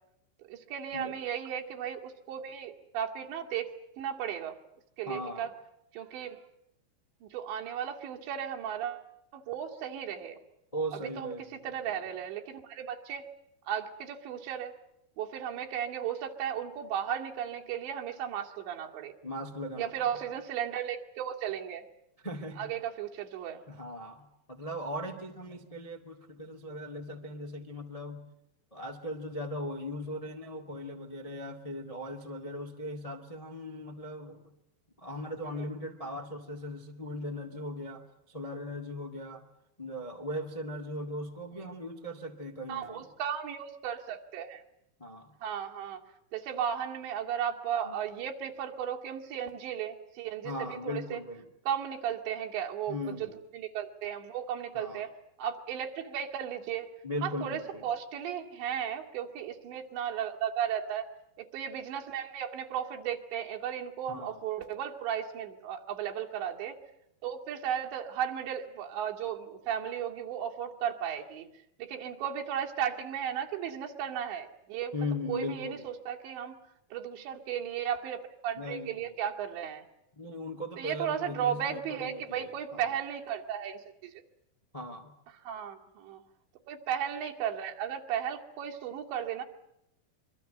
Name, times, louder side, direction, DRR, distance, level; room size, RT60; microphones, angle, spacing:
voice 1, 0.5-4.6 5.0-5.5 5.9-6.4 7.2-9.1 9.3-10.4 10.9-13.2 13.7-14.7 15.2-19.1 19.8-21.9 22.6-23.6 35.6-35.7 42.7-44.6 45.4-46.0 46.3-51.2 51.7-55.1 55.4-56.9 57.2-61.1 61.4-66.8 67.2-71.5 71.8-74.9 75.3-76.6 76.9-79.8 80.8-84.1 85.4-86.2 86.7-89.4, right 9 dB, 80° right, 2 dB, 4.4 m, -35 dB
voice 2, 5.0-5.5 10.7-12.0 19.2-20.3 22.2-22.7 23.7-28.2 28.7-34.4 35.0-39.4 39.8-43.1 45.0-45.3 47.8-48.0 50.4-51.5 52.9-53.3 54.7-55.0 57.0-57.9 64.1-64.4 74.9-75.8 78.6-79.1 80.1-82.9 84.7-85.1, left 1 dB, 20° left, 4 dB, 0.8 m, -38 dB
25.5 x 24.0 x 7.9 m, 0.81 s
omnidirectional pair, 5.1 m